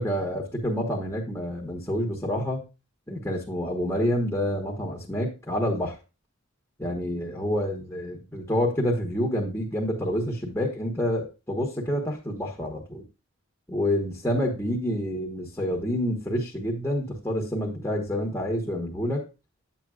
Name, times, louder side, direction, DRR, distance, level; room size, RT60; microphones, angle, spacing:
voice 1, 0.0-2.7 3.1-6.0 6.8-13.0 13.7-19.3, equal, 10° left, -1 dB, 1.2 m, -28 dB
10.0 x 7.6 x 2.4 m, 0.28 s
head